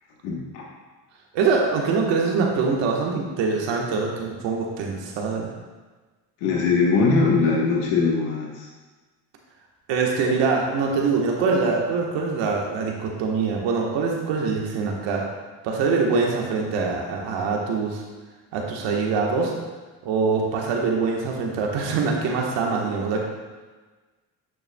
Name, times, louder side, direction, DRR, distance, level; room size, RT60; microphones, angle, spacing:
voice 1, 0.2-0.6 6.4-8.6, left 4 dB, 85° left, -2 dB, 1.3 m, -21 dB
voice 2, 1.3-5.5 9.9-15.3 15.6-18.0 18.5-19.5 20.0-23.2, right 4 dB, 80° right, 0 dB, 1.3 m, -24 dB
9.1 x 6.7 x 2.2 m, 1.3 s
hypercardioid pair, 55°, 43 cm